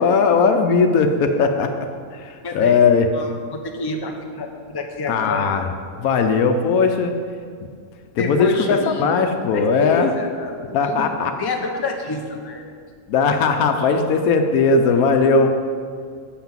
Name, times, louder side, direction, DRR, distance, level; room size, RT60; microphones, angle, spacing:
voice 1, 0.0-1.7 2.1-3.1 5.1-5.7 6.0-7.2 8.2-10.1 10.7-11.3 13.1-15.5, left 4 dB, 90° left, 6 dB, 1.1 m, -18 dB
voice 2, 2.4-2.8 3.1-3.3 3.7-5.5 8.2-9.1 9.5-11.1 11.4-12.6 14.0-14.2, left 3 dB, 25° left, 3 dB, 0.6 m, -28 dB
6.7 x 5.8 x 7.2 m, 2.2 s
omnidirectional pair, 1.5 m